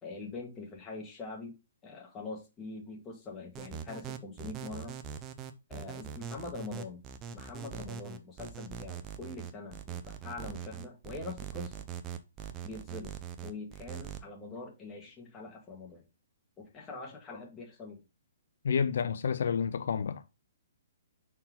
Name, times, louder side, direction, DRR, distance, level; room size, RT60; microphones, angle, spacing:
voice 1, 0.0-1.5 1.8-5.0 5.7-7.0 7.3-11.8 12.6-13.1 13.4-16.1 16.6-18.0, left 3 dB, 20° left, 2.1 m, -43 dB
sound 1, 3.5-14.2, right 8 dB, 25° right, 0.8 m, -42 dB
voice 2, 18.6-20.2, left 6 dB, 70° left, 0.5 m, -29 dB
5.8 x 4.5 x 3.8 m
hypercardioid pair, 150°, 0 cm